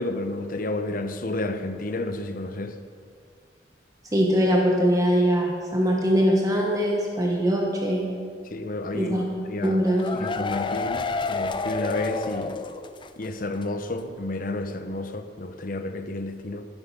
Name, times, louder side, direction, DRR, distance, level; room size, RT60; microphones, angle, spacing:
voice 1, 0.0-2.8 8.5-9.2 9.4-9.8 10.2-12.6 13.2-16.7, left 2 dB, 50° left, 0.8 m, -31 dB
voice 2, 4.1-8.1 8.9-9.2 9.6-10.1, equal, 20° right, 1.4 m, -22 dB
sound 1, 9.6-13.3 13.6-13.7 14.0-14.1, left 3 dB, 25° left, 0.4 m, -30 dB
12.0 x 11.0 x 5.4 m
head